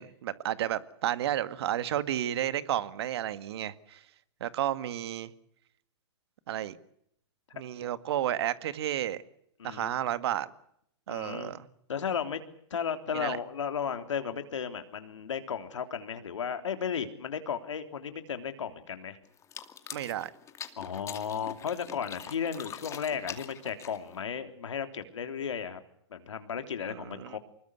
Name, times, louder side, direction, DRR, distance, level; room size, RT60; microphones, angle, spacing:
voice 1, 0.0-4.0 4.4-5.3 6.5-6.8 7.5-9.2 9.6-10.5 11.1-11.7 13.1-13.4 19.9-20.3 26.9-27.4, right 12 dB, 60° right, 1.9 m, -32 dB
voice 2, 9.6-9.9 11.1-11.5 11.9-12.4 12.7-19.2 20.8-25.8 26.1-27.4, left 7 dB, 80° left, 3.4 m, -34 dB
sound 1, 19.4-24.2, left 8 dB, 20° left, 2.4 m, -44 dB
25.5 x 21.0 x 8.2 m
hypercardioid pair, 135°, 15 cm